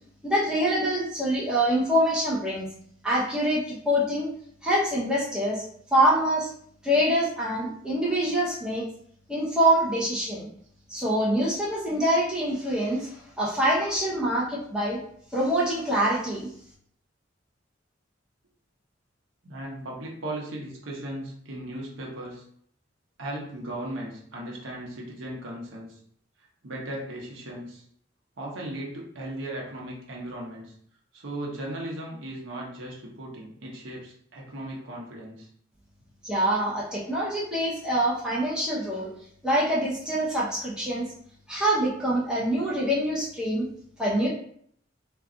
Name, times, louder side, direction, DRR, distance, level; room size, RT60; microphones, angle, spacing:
voice 1, 0.2-2.7 3.0-4.3 4.6-5.6 5.9-6.5 6.8-8.8 9.3-10.5 10.9-15.0 15.3-16.5 36.2-39.1 39.4-41.1 41.5-43.7 44.0-44.3, right 1 dB, 5° right, -6 dB, 0.7 m, -25 dB
voice 2, 19.4-22.4 23.2-26.0 26.6-27.8 28.4-30.7 31.1-35.5, right 1 dB, 80° right, -2 dB, 0.8 m, -37 dB
2.4 x 2.3 x 3.8 m, 0.65 s
head